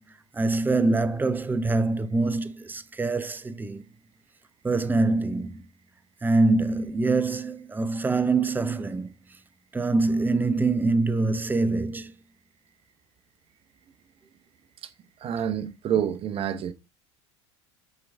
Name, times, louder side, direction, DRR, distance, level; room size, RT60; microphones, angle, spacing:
voice 1, 0.3-3.8 4.6-5.7 6.2-9.1 9.7-12.1, right 3 dB, 10° right, 0.6 m, -24 dB
voice 2, 15.2-16.7, right 9 dB, 40° right, 0.9 m, -27 dB
6.8 x 4.6 x 3.4 m
hypercardioid pair, 85°, 15 cm